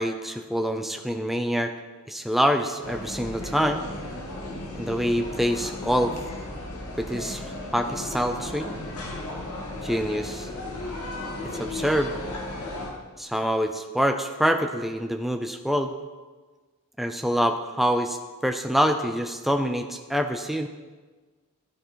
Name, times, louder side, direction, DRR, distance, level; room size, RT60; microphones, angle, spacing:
voice 1, 0.0-1.7 2.1-3.9 4.7-6.1 7.0-8.8 9.8-10.5 11.6-12.1 13.2-15.9 17.0-20.7, equal, ahead, 5 dB, 0.5 m, -26 dB
sound 1, 2.8-12.9, left 1 dB, 80° left, 2.3 m, -35 dB
13.5 x 12.5 x 4.5 m, 1.4 s
head